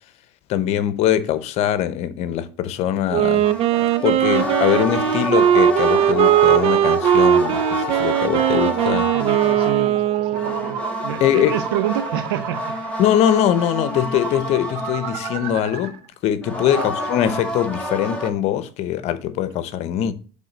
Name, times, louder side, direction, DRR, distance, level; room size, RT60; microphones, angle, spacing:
voice 1, 0.5-3.5 3.8-9.1 11.2-11.6 13.0-20.1, left 11 dB, 60° left, 0.9 m, -22 dB
Wind instrument woodwind instrument, 3.1-10.9, right 11 dB, 55° right, 0.8 m, -19 dB
sound 1, 3.4-9.9 10.3-15.8 16.4-18.3, equal, 10° left, 2.4 m, -28 dB
sound 2, 3.6-16.1, right 9 dB, 70° right, 1.2 m, -36 dB
voice 2, 9.1-10.8 11.0-12.6 16.6-16.9, right 11 dB, 85° right, 0.9 m, -28 dB
7.8 x 3.7 x 6.4 m
supercardioid pair, 90°, 12 cm